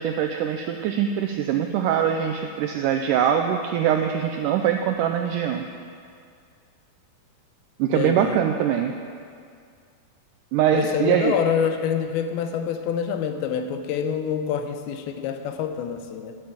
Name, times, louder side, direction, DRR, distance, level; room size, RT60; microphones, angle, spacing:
voice 1, 0.0-5.7 7.8-8.9 10.5-11.3, right 9 dB, 90° right, 5 dB, 1.8 m, -23 dB
voice 2, 7.9-8.4 10.7-16.4, left 7 dB, 85° left, 7 dB, 2.7 m, -26 dB
10.5 x 7.7 x 8.7 m, 2.3 s
omnidirectional pair, 4.3 m